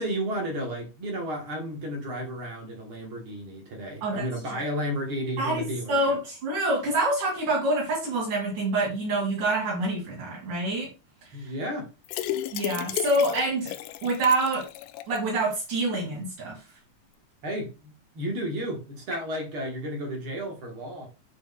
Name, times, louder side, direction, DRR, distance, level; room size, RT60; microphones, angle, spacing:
voice 1, 0.0-6.2 11.3-11.9 17.4-21.1, equal, 55° right, 1.7 m, -33 dB
voice 2, 5.4-10.9 11.4-11.5 12.5-13.7 14.0-14.7 15.1-16.6, right 2 dB, 80° right, 4.1 m, -26 dB
sound 1, 12.1-15.2 15.5-15.6 15.9-16.0, left 13 dB, 85° left, 2.1 m, -33 dB
10.5 x 4.3 x 2.2 m
omnidirectional pair, 3.6 m